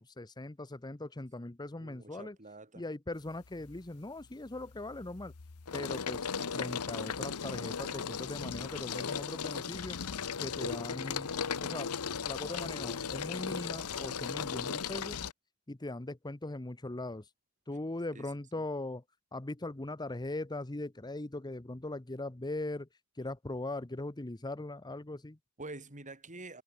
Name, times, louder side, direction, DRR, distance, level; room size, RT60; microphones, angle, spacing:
voice 1, 0.0-2.4 2.7-5.3 5.7-10.0 10.4-11.3 11.6-11.9 12.2-15.2 15.7-17.3 17.7-19.0 19.3-22.9 23.1-25.4, left 2 dB, 20° left, 0.9 m, -40 dB
voice 2, 1.8-2.8 18.1-18.3 18.5-18.6 25.6-26.6, right 2 dB, 35° right, 6.0 m, -47 dB
sound 1, 3.3-3.8 4.2-15.3, left 6 dB, 90° left, 1.0 m, -37 dB
head